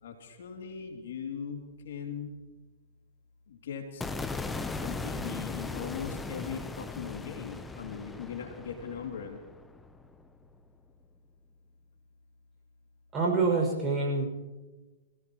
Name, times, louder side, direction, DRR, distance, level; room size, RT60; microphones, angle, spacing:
voice 1, 0.0-2.4 3.5-4.1 4.7-9.4, left 6 dB, 70° left, 2 dB, 2.8 m, -40 dB
sound 1, 4.0-10.2, left 3 dB, 10° left, 0.8 m, -38 dB
voice 2, 13.1-14.2, right 3 dB, 20° right, -1 dB, 6.3 m, -26 dB
26.0 x 17.0 x 3.1 m, 1.2 s
hypercardioid pair, 130°, 0 cm